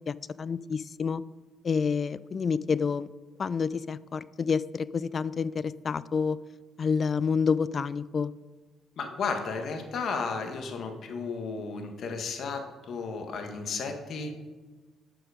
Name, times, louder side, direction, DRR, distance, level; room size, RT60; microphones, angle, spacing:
voice 1, 0.1-1.2 1.6-3.1 3.4-6.4 6.8-8.3, left 5 dB, 45° left, 18 dB, 0.3 m, -28 dB
voice 2, 9.0-12.6 12.9-14.3, left 4 dB, 65° left, 4 dB, 1.5 m, -33 dB
11.0 x 6.1 x 5.0 m, 1.3 s
cardioid pair, 90°, 0 cm